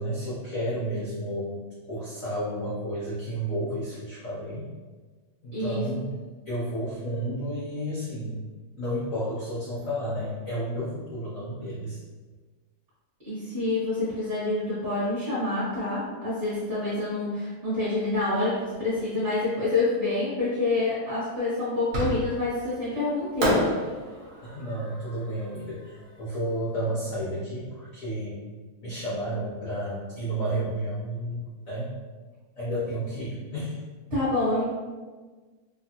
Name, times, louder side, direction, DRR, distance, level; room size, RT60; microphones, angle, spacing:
voice 1, 0.0-1.6 1.9-4.7 5.4-6.1 6.5-8.4 8.8-12.0 24.4-28.4 28.8-32.0 32.6-33.8, right 1 dB, 85° left, -8 dB, 0.7 m, -31 dB
voice 2, 5.5-5.9 13.2-23.6 34.1-34.6, left 2 dB, 35° right, -13 dB, 1.0 m, -27 dB
Fireworks, 21.9-22.6 23.4-26.5, equal, 80° right, 0.7 m, -29 dB
3.3 x 2.4 x 2.7 m, 1.4 s
omnidirectional pair, 2.4 m